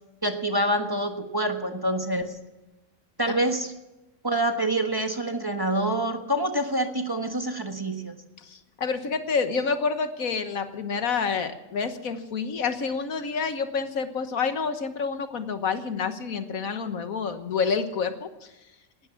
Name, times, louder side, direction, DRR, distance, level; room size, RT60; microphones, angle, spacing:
voice 1, 0.2-2.4 3.2-3.7 4.2-8.2, right 1 dB, 15° right, 4 dB, 1.4 m, -26 dB
voice 2, 8.4-18.5, left 5 dB, 80° left, 9 dB, 1.7 m, -28 dB
18.5 x 13.0 x 5.9 m, 1.0 s
omnidirectional pair, 1.4 m